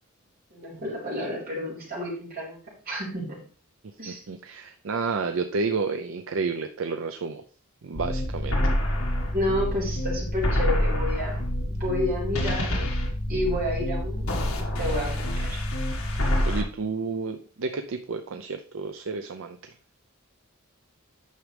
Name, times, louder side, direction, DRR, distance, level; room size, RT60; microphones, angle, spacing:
voice 1, 0.5-2.6 2.8-3.4 4.0-4.2 9.3-11.4 11.7-12.9 13.3-15.6, left 1 dB, 45° right, -5 dB, 4.3 m, -30 dB
voice 2, 4.1-7.4 7.8-8.6 16.5-19.7, right 4 dB, 65° right, 7 dB, 0.5 m, -31 dB
sound 1, 7.9-16.6, equal, 80° left, 1.7 m, -27 dB
9.4 x 6.2 x 3.3 m, 0.41 s
head